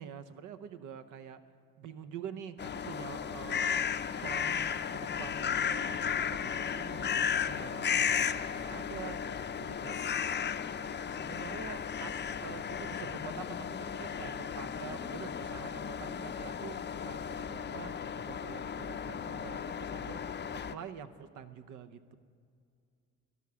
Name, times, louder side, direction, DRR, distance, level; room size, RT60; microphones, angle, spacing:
voice 1, 0.0-1.4 1.8-3.9 4.2-10.0 11.1-12.1 12.4-20.2 20.7-22.1, right 8 dB, 80° right, 11 dB, 0.8 m, -46 dB
sound 1, 2.6-20.7, left 7 dB, 35° left, 0.5 m, -35 dB
13.5 x 11.0 x 6.9 m, 2.3 s
cardioid pair, 90°, 30 cm